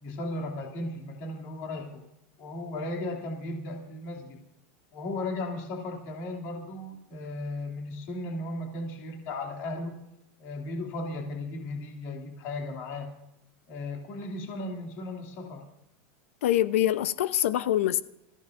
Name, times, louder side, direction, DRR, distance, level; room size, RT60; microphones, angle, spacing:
voice 1, 0.0-2.0 2.4-4.4 4.9-10.0 10.4-13.1 13.7-15.6, left 2 dB, 40° left, 2.7 m, -36 dB
voice 2, 16.4-18.0, left 12 dB, 80° left, 0.8 m, -24 dB
27.5 x 14.5 x 2.6 m
supercardioid pair, 180°, 7 cm